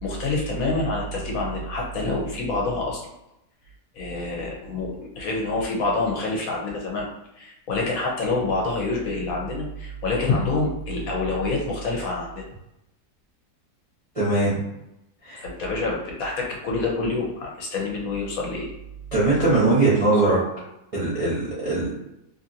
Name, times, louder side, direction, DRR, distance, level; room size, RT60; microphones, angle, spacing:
voice 1, 0.0-3.0 3.9-7.1 7.3-12.4 15.4-18.7, left 3 dB, 65° left, -2 dB, 1.0 m, -27 dB
voice 2, 14.1-14.6 15.2-15.4 19.1-20.4 20.9-21.9, right 2 dB, 40° right, -10 dB, 0.5 m, -21 dB
2.8 x 2.5 x 2.6 m, 0.87 s
omnidirectional pair, 1.7 m